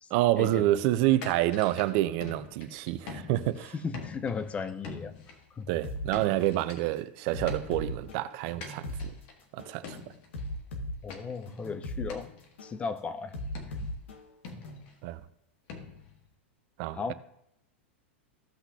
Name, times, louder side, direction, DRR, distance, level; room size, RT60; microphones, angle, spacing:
voice 1, 0.1-3.7 5.7-9.1 9.5-10.0 15.0-15.2 16.8-17.1, right 15 dB, 50° right, 0.6 m, -28 dB
sound 1, 1.2-3.6 3.9-5.4 5.9-7.0 7.5-8.2 8.6-9.4 9.8-10.5 11.1-11.6 12.1-12.5 13.5-14.1 14.4-15.0 15.7-16.3, left 4 dB, 55° left, 1.6 m, -45 dB
voice 2, 3.8-5.1 5.6-5.7 11.0-12.3 12.6-13.3 13.8-13.9 16.9-17.1, left 5 dB, 20° left, 0.7 m, -35 dB
sound 2, 5.8-6.1 6.6-6.8 7.3-9.1 9.6-9.8 10.3-12.1 12.6-12.8 13.3-14.8, left 1 dB, 80° left, 1.6 m, -38 dB
15.5 x 5.8 x 2.8 m
hypercardioid pair, 110°, 6 cm